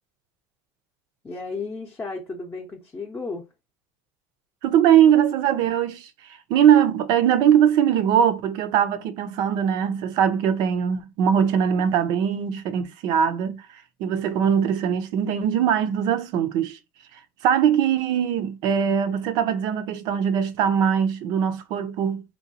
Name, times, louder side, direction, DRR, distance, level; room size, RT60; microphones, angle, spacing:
voice 1, 1.2-3.5, left 3 dB, 20° left, 0.6 m, -33 dB
voice 2, 4.6-13.7 14.0-16.8 17.4-22.2, right 9 dB, 60° right, 0.5 m, -21 dB
2.9 x 2.2 x 2.7 m
supercardioid pair, 95°, 8 cm